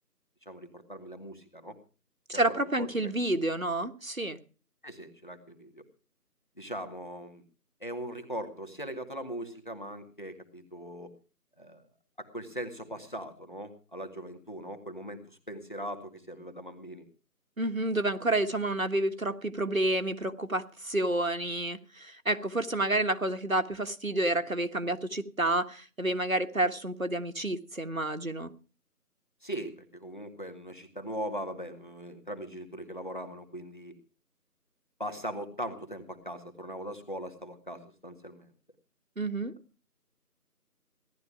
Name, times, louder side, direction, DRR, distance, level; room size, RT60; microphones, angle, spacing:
voice 1, 0.5-1.8 2.3-3.1 4.8-5.8 6.6-7.4 7.8-11.1 11.6-11.8 12.2-17.0 29.4-33.9 35.0-38.5, equal, 30° left, 7 dB, 2.1 m, -40 dB
voice 2, 2.3-4.4 17.6-28.5 39.2-39.5, right 1 dB, 55° right, 8 dB, 1.6 m, -29 dB
17.5 x 12.0 x 4.9 m, 0.36 s
figure-of-eight pair, 175°, 48 cm